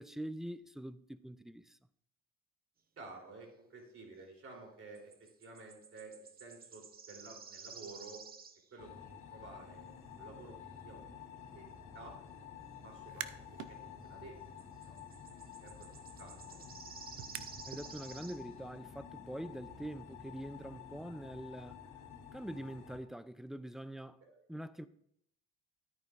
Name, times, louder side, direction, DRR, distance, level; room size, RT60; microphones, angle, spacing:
voice 1, 0.0-1.8 17.7-21.8 22.3-24.2 24.5-24.9, right 1 dB, ahead, 0.4 m, -44 dB
voice 2, 3.0-8.3 8.7-10.6 10.8-12.2 12.8-13.2 13.7-14.4 14.9-15.0 15.6-16.6 24.2-24.4, right 3 dB, 50° right, 3.4 m, -53 dB
sound 1, 5.0-8.9 14.6-18.4, right 5 dB, 30° right, 0.7 m, -52 dB
sound 2, 8.8-23.0, left 7 dB, 80° left, 1.5 m, -51 dB
sound 3, 12.9-13.7 14.1-17.9, right 12 dB, 75° right, 0.6 m, -49 dB
13.0 x 9.1 x 2.5 m
supercardioid pair, 80°, 30 cm